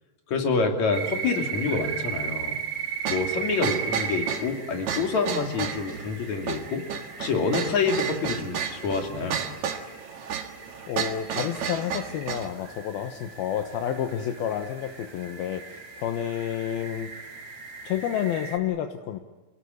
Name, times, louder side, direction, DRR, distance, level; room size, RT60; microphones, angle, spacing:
voice 1, 0.3-2.6 3.1-6.9 7.2-9.4, left 4 dB, 40° left, 3 dB, 3.6 m, -27 dB
sound 1, 0.9-18.6, right 7 dB, 35° right, 3.9 m, -37 dB
sound 2, 3.0-12.5, right 7 dB, 55° right, 2.2 m, -32 dB
voice 2, 10.9-17.1 17.8-19.2, left 10 dB, 70° left, 6 dB, 2.5 m, -30 dB
28.5 x 19.0 x 9.7 m, 1.2 s
omnidirectional pair, 5.5 m